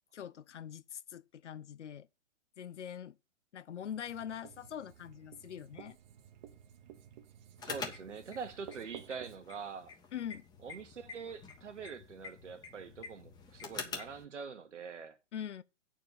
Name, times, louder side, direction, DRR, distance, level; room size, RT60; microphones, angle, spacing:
voice 1, 0.1-2.1 2.6-3.2 3.5-6.0 10.1-10.4 15.3-15.6, left 9 dB, 70° left, 0.7 m, -43 dB
Writing, 3.8-9.4, right 9 dB, 40° right, 1.0 m, -54 dB
sound 1, 7.6-14.2, left 5 dB, 10° left, 1.1 m, -46 dB
voice 2, 7.6-9.9 10.6-15.2, right 5 dB, 75° right, 1.5 m, -44 dB
9.0 x 4.5 x 7.1 m
hypercardioid pair, 130°, 36 cm